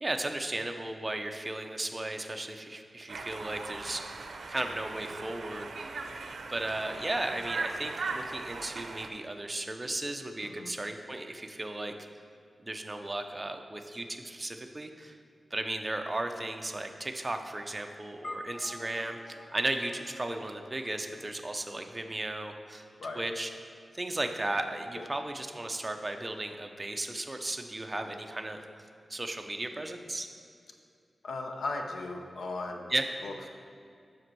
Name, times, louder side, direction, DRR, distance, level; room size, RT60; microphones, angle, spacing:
voice 1, 0.0-4.0 4.5-5.9 6.5-11.9 12.6-15.2 15.5-22.8 23.2-23.5 23.9-28.7 29.1-30.3 32.9-33.0, right 2 dB, 20° right, 5 dB, 0.5 m, -35 dB
Conversation, 3.1-9.1, right 3 dB, 75° right, 0.5 m, -39 dB
voice 2, 10.4-10.7 23.0-23.3 25.0-25.1 31.2-32.9 33.2-33.5, left 2 dB, 80° left, 4 dB, 0.6 m, -37 dB
sound 1, 18.2-22.8, left 1 dB, 35° left, 0.7 m, -48 dB
7.6 x 6.1 x 4.6 m, 2.3 s
wide cardioid pair, 170°, 0 cm